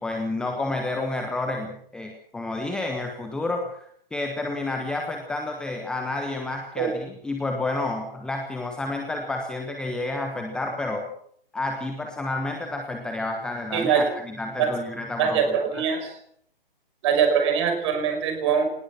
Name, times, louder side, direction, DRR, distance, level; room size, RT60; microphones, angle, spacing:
voice 1, 0.0-11.1 11.5-15.4 15.7-15.8, left 2 dB, 5° left, 3 dB, 1.2 m, -30 dB
voice 2, 13.7-14.1 14.6-14.7 15.2-16.1 17.0-18.6, right 7 dB, 30° right, 6 dB, 5.4 m, -22 dB
23.5 x 19.5 x 6.1 m, 0.67 s
figure-of-eight pair, 135°, 29 cm